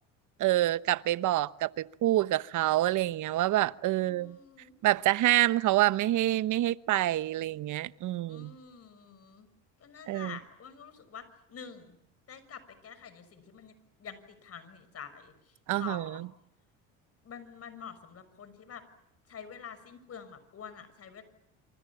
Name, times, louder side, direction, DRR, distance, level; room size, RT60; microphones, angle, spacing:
voice 1, 0.4-4.4 4.8-8.5 10.1-10.4 15.7-16.3, right 15 dB, 55° right, 1.1 m, -27 dB
voice 2, 3.9-4.7 8.2-9.5 9.8-12.0 12.3-13.7 14.0-15.3 15.8-16.3 17.2-18.8 19.3-21.2, left 7 dB, 40° left, 6.1 m, -47 dB
27.5 x 27.0 x 7.3 m
supercardioid pair, 90°, 35 cm